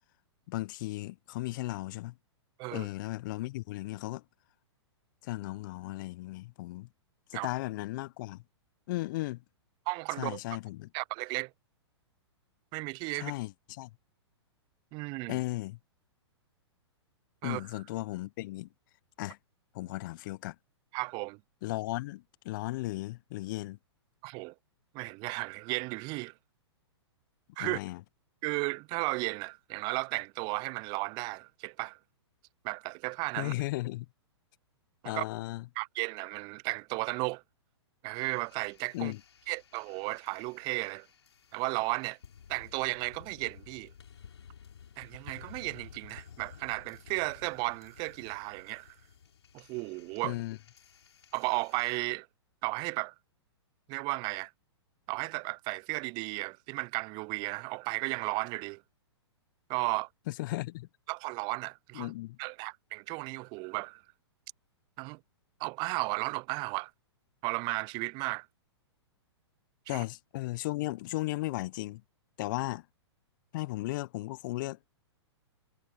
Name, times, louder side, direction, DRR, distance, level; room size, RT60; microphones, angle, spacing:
voice 1, 0.5-2.1 2.7-4.2 5.2-6.9 7.3-8.4 8.9-9.4 10.2-10.9 13.1-13.9 15.3-15.8 17.4-18.7 19.2-19.4 19.7-20.6 21.6-23.8 27.6-28.0 33.4-34.1 35.0-35.7 38.9-39.2 50.2-50.6 60.3-60.9 61.9-62.4 69.9-72.0 72.4-72.8 73.5-74.8, left 19 dB, 45° left, 0.7 m, -35 dB
voice 2, 9.9-10.4 10.9-11.5 12.7-13.3 14.9-15.4 17.4-17.6 20.9-21.4 24.2-24.5 24.9-26.3 27.6-27.8 28.4-32.0 32.6-33.5 35.0-35.3 35.8-37.4 38.0-39.1 39.5-41.1 41.5-42.2 42.5-43.9 45.0-49.0 49.5-50.4 51.3-52.3 52.6-53.1 53.9-54.5 55.1-58.8 59.7-60.1 61.1-62.1 62.4-64.0 65.0-65.2 65.6-66.9 67.4-68.5 69.9-70.0, right 27 dB, 30° right, 0.5 m, -34 dB
sound 1, 38.1-52.0, left 7 dB, 70° left, 5.0 m, -54 dB
figure-of-eight pair, 110°, 15 cm